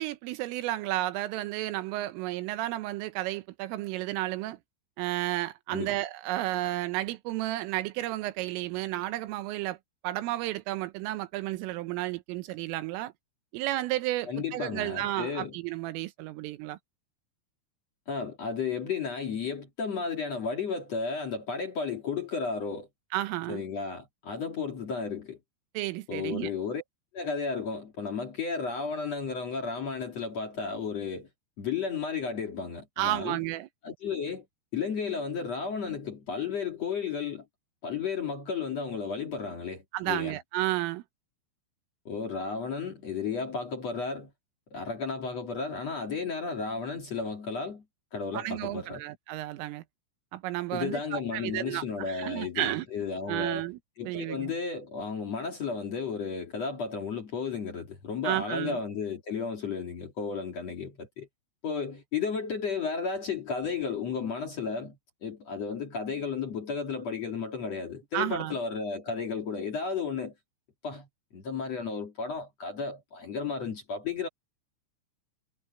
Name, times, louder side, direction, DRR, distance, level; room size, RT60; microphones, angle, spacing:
voice 1, 0.0-4.6 5.0-9.8 10.0-13.1 13.5-16.8 23.1-23.6 25.8-26.5 33.0-33.7 39.9-41.0 48.3-49.8 50.3-52.9 53.3-53.8 54.1-54.5 58.2-58.8 68.1-68.6, right 16 dB, 85° right, 3.6 m, -32 dB
voice 2, 14.3-15.6 18.1-22.9 23.5-25.4 26.1-26.8 27.1-31.3 31.6-33.4 33.8-34.4 34.7-37.4 37.8-40.4 42.0-44.3 44.7-47.8 48.1-49.0 50.7-53.7 54.0-61.3 61.6-70.3 70.8-71.1 71.3-74.3, left 5 dB, 45° left, 2.5 m, -33 dB
omnidirectional pair, 5.7 m